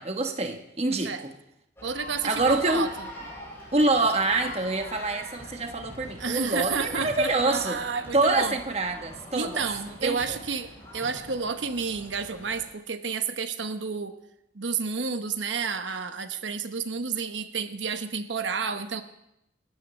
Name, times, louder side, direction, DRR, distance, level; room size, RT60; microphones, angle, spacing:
voice 1, 0.0-1.3 2.2-2.9 3.7-7.8 8.1-9.6 10.0-10.2, right 2 dB, 35° right, 5 dB, 1.2 m, -26 dB
sound 1, 1.8-12.6, left 1 dB, 15° left, 6.9 m, -43 dB
voice 2, 1.8-3.1 6.2-8.6 9.3-14.2 14.5-19.0, right 5 dB, 85° right, 8 dB, 1.0 m, -30 dB
27.5 x 13.0 x 3.2 m, 0.81 s
head